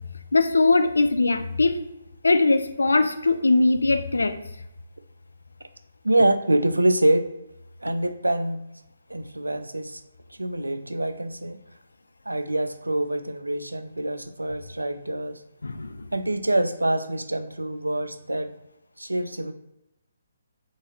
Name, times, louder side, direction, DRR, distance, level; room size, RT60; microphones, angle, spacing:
voice 1, 0.3-1.8 2.2-4.4 15.6-16.1, left 3 dB, 70° left, 10 dB, 0.3 m, -21 dB
voice 2, 6.0-7.3 7.8-8.6 9.1-10.0 10.4-11.6 12.3-15.4 16.1-18.5 19.0-19.5, right 1 dB, 85° right, 10 dB, 0.3 m, -25 dB
3.6 x 2.5 x 2.9 m, 0.90 s
figure-of-eight pair, 135°, 0 cm